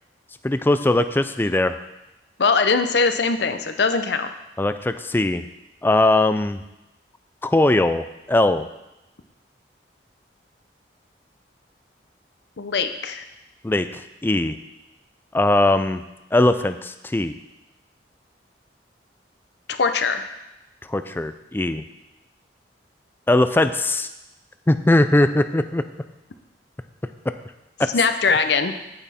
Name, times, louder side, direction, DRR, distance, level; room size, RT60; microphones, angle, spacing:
voice 1, 0.4-1.7 4.6-5.4 5.8-6.6 7.4-8.6 13.6-14.6 15.3-16.0 16.3-17.3 20.9-21.8 23.3-24.1 24.7-25.8 27.8-27.9, left 2 dB, 10° left, 10 dB, 0.4 m, -20 dB
voice 2, 2.4-4.3 12.6-13.2 19.7-20.3 27.9-28.7, left 4 dB, 65° left, 8 dB, 0.7 m, -21 dB
8.7 x 8.4 x 4.3 m, 0.94 s
head